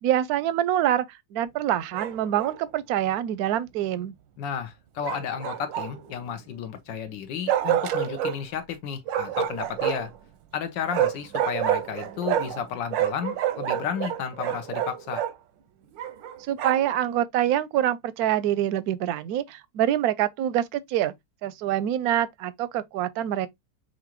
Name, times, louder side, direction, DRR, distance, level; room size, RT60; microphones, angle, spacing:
voice 1, 0.0-4.1 16.4-21.1 21.4-23.5, right 11 dB, 70° right, 0.9 m, -25 dB
Bark, 1.9-2.6 5.0-6.1 7.5-8.4 9.1-10.2 10.9-12.6 12.9-15.3 16.0-16.9, right 11 dB, 90° right, 1.4 m, -28 dB
voice 2, 4.4-10.1 10.5-15.2, left 7 dB, 80° left, 1.5 m, -33 dB
6.0 x 2.6 x 2.9 m
omnidirectional pair, 2.0 m